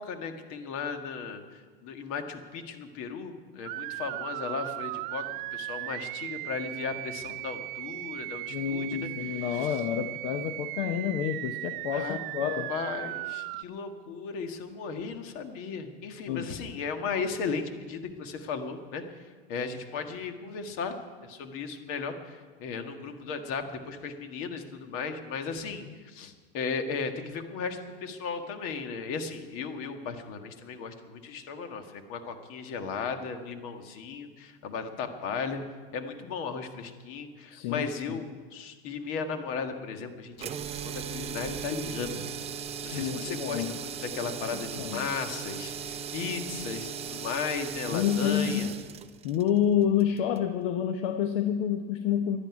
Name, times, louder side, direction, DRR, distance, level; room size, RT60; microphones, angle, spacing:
voice 1, 0.0-1.4 1.8-5.3 5.5-9.7 11.9-12.2 12.7-19.0 19.5-35.6 35.9-42.2 42.8-48.7, left 5 dB, 50° left, 6 dB, 1.8 m, -36 dB
sound 1, 3.7-13.6, right 20 dB, 60° right, 0.4 m, -37 dB
voice 2, 8.5-12.7 16.3-16.5 25.9-26.0 37.5-38.2 42.9-43.8 44.4-45.1 47.9-48.7 49.2-52.4, left 9 dB, 65° left, 8 dB, 0.9 m, -29 dB
sound 2, 40.4-50.5, right 7 dB, 20° right, 0.6 m, -38 dB
11.5 x 11.0 x 9.6 m, 1.5 s
supercardioid pair, 135°, 29 cm